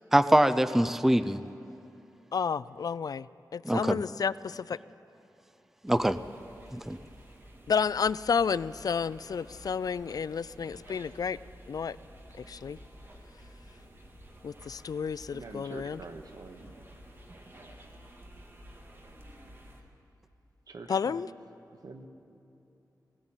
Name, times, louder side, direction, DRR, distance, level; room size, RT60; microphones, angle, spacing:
voice 1, 0.1-1.4 3.6-4.0 5.8-6.2 6.7-7.0, right 1 dB, 5° right, 12 dB, 0.5 m, -23 dB
voice 2, 2.3-4.8 7.7-11.4 11.7-12.0 12.4-12.8 14.4-16.0 20.9-21.3, left 6 dB, 65° left, 18 dB, 0.4 m, -31 dB
sound 1, 5.9-19.8, equal, 35° right, 2.1 m, -52 dB
voice 3, 15.3-16.7 20.7-21.3 21.8-22.1, right 3 dB, 70° right, 5 dB, 1.6 m, -45 dB
20.0 x 16.0 x 9.0 m, 2.9 s
wide cardioid pair, 105°, 7 cm